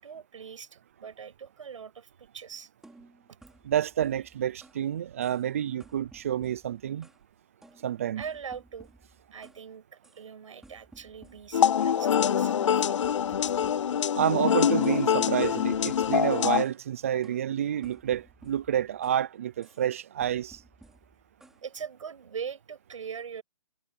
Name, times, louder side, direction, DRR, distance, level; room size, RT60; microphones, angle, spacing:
voice 1, 0.0-2.7 8.2-8.9 9.3-9.8 10.2-13.0 13.3-13.4 14.1-14.2 21.6-23.4, right 7 dB, 60° right, 6.9 m, -41 dB
sound 1, 2.8-4.9 5.2-5.5 5.8-7.3 7.6-9.7 10.0-10.3 10.6-12.0 12.4-14.5 14.8-15.2 15.4-16.8 17.2-19.3 19.6-19.9 20.2-21.6, right 2 dB, ahead, 4.6 m, -56 dB
voice 2, 3.6-7.1 7.8-8.2 14.2-20.6, right 10 dB, 25° right, 0.4 m, -29 dB
sound 2, 11.5-16.6, left 8 dB, 60° left, 0.5 m, -25 dB
hypercardioid pair, 170°, 18 cm